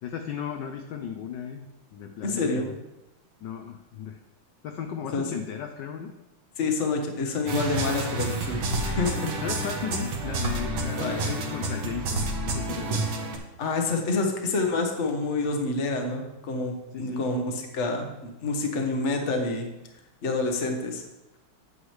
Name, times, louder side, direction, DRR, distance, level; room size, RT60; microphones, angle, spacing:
voice 1, 0.0-1.7 1.9-2.8 3.4-4.2 4.6-6.1 9.4-13.1 16.9-17.3, left 8 dB, 70° left, 4 dB, 1.1 m, -35 dB
voice 2, 2.2-2.7 5.1-5.3 6.6-9.3 11.0-11.2 13.6-19.7 20.2-21.0, left 3 dB, 40° left, 3 dB, 1.1 m, -28 dB
sound 1, 7.5-13.4, right 2 dB, 60° right, 1.6 m, -29 dB
9.6 x 8.1 x 3.2 m, 0.99 s
omnidirectional pair, 2.4 m